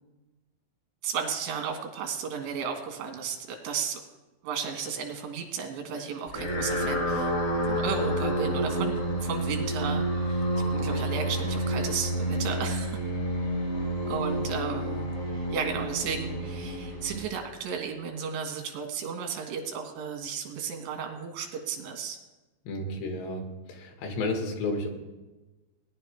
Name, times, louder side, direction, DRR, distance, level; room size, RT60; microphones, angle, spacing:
voice 1, 1.0-4.0 4.4-7.3 7.7-13.0 14.1-22.2, right 6 dB, 90° right, 4 dB, 3.8 m, -34 dB
sound 1, 6.3-17.7, right 1 dB, 65° left, 1.0 m, -29 dB
voice 2, 22.7-24.9, left 2 dB, 80° left, 3 dB, 3.8 m, -32 dB
19.0 x 11.0 x 3.4 m, 1.1 s
omnidirectional pair, 4.9 m